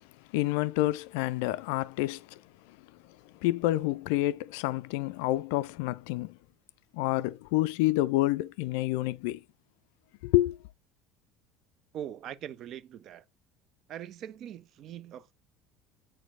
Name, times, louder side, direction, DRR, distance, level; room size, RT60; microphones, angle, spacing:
voice 1, 0.3-2.4 2.7-2.8 3.4-6.4 6.9-9.4 10.2-10.6, left 17 dB, 60° left, 0.3 m, -28 dB
voice 2, 11.9-13.2 13.9-15.3, right 10 dB, 45° right, 0.5 m, -41 dB
8.8 x 4.3 x 2.4 m
figure-of-eight pair, 65°, 0 cm